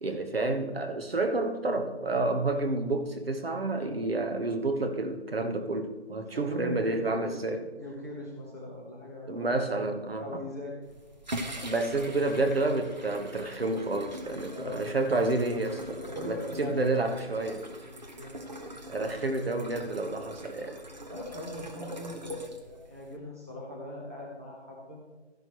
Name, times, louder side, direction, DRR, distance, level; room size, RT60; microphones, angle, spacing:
voice 1, 0.0-7.6 9.3-10.4 11.6-17.7 18.9-20.8, right 2 dB, 60° right, 6 dB, 1.4 m, -29 dB
voice 2, 6.3-7.3 7.7-9.9 10.2-10.7 14.5-14.9 16.0-16.9 17.9-18.3 21.1-25.0, left 1 dB, 15° right, -5 dB, 0.9 m, -41 dB
sound 1, 10.8-23.2, equal, 40° right, 1.0 m, -42 dB
13.5 x 11.0 x 3.1 m, 1.2 s
figure-of-eight pair, 180°, 34 cm